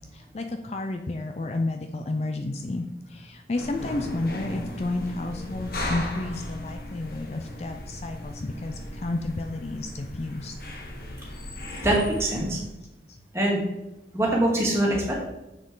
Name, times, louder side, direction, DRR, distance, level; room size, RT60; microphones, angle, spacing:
voice 1, 0.1-10.5, left 2 dB, 35° left, 5 dB, 0.4 m, -31 dB
sound 1, 3.5-12.7, left 1 dB, 55° left, 1.3 m, -37 dB
voice 2, 11.8-12.6 13.3-13.6 14.1-15.1, right 1 dB, 15° right, -3 dB, 1.9 m, -23 dB
7.3 x 6.5 x 3.8 m, 0.95 s
head